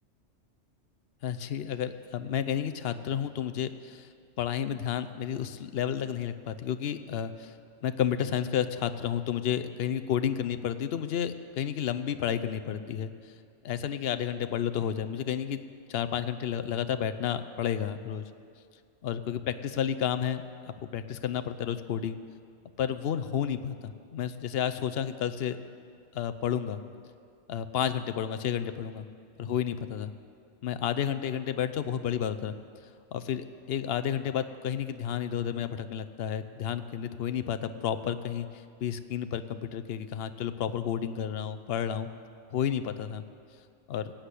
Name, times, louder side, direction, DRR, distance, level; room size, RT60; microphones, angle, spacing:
voice 1, 1.2-4.1 4.4-7.5 7.8-13.1 13.6-15.6 15.9-18.2 19.0-22.2 22.8-25.6 26.1-26.8 27.5-29.1 29.4-30.1 30.6-32.5 33.1-38.5 38.8-42.1 42.5-43.2 43.9-44.1, left 9 dB, 60° left, 12 dB, 0.8 m, -31 dB
16.0 x 8.2 x 8.3 m, 2.3 s
omnidirectional pair, 1.3 m